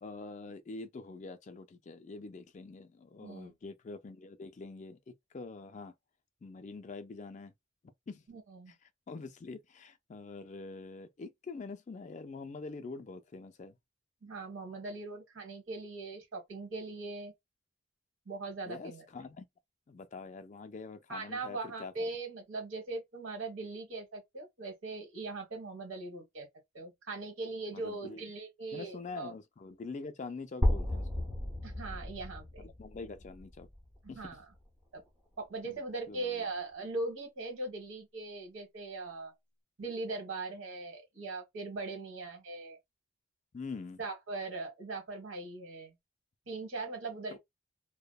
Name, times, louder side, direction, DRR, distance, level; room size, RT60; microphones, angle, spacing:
voice 1, 0.0-5.9 6.4-7.5 8.1-8.2 8.7-13.8 18.7-19.4 19.9-22.1 27.7-28.3 28.7-31.1 32.6-33.7 34.1-34.3 35.6-35.8 36.1-36.4 43.5-44.0 47.3-47.4, left 3 dB, 35° left, 0.3 m, -45 dB
voice 2, 3.2-3.5 8.3-8.7 14.2-17.3 18.3-19.0 21.1-26.5 26.7-29.3 31.6-32.7 34.1-34.4 34.9-35.0 35.4-39.3 39.8-42.8 44.0-45.9 46.5-47.4, right 3 dB, 75° right, 1.3 m, -40 dB
sound 1, 30.6-34.6, left 1 dB, 10° right, 0.6 m, -34 dB
2.7 x 2.1 x 2.2 m
head